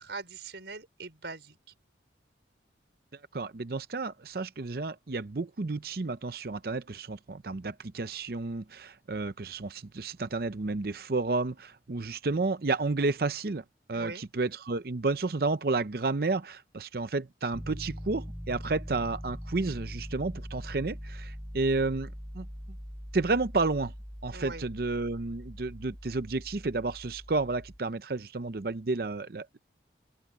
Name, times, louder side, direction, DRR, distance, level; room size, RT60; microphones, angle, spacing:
voice 1, 0.0-1.6 13.9-14.3 24.3-24.7, right 3 dB, 70° right, 4.7 m, -41 dB
voice 2, 3.3-13.6 13.9-22.5 23.1-23.9 24.2-29.6, right 3 dB, 55° right, 0.6 m, -31 dB
Piano, 17.5-27.8, equal, ahead, 3.0 m, -42 dB
open air
head